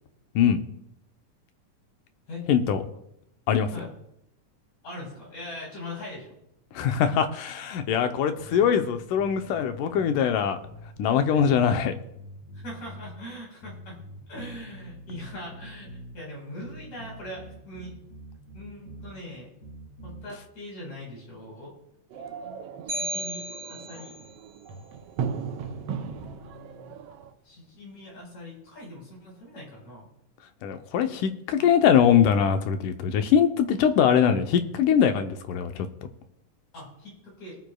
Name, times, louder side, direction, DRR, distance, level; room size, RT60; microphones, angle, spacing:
voice 1, 2.5-2.8 3.5-3.7 6.7-10.6 11.0-11.9 30.6-35.9, left 8 dB, 75° left, 7 dB, 2.3 m, -22 dB
voice 2, 4.8-6.4 8.5-8.6 10.3-10.5 11.3-11.4 12.6-14.0 14.3-17.9 18.5-19.5 20.0-21.7 22.9-23.4 23.7-24.1 25.6-26.9 27.4-30.1 36.7-37.6, left 1 dB, 60° left, -3 dB, 5.9 m, -41 dB
sound 1, 8.4-10.2 10.6-13.2 13.6-16.2 16.6-19.2 19.6-20.3, equal, 30° left, 4.8 m, -45 dB
sound 2, 22.1-27.3, right 6 dB, 70° right, 1.5 m, -37 dB
sound 3, 22.9-24.3, right 1 dB, 45° right, 3.7 m, -34 dB
24.5 x 9.1 x 2.3 m, 0.81 s
omnidirectional pair, 3.8 m